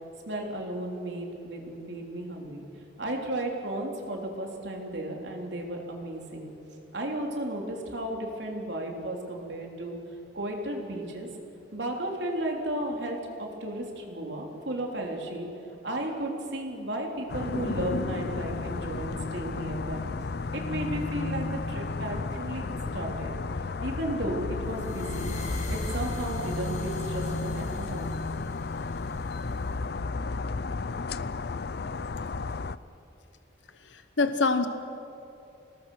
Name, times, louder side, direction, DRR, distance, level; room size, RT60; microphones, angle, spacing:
voice 1, 0.3-2.7 3.0-6.5 6.9-10.0 10.3-11.3 11.7-15.5 15.8-20.1 20.5-23.3 23.8-25.3 25.7-28.1, right 1 dB, 70° right, 1 dB, 3.6 m, -34 dB
sound 1, 17.3-32.8, left 3 dB, 60° left, 0.5 m, -33 dB
sound 2, 24.7-29.7, left 1 dB, 45° left, 4.9 m, -39 dB
voice 2, 33.9-34.7, left 3 dB, 85° left, 9 dB, 1.0 m, -25 dB
27.5 x 19.0 x 6.4 m, 2.8 s
head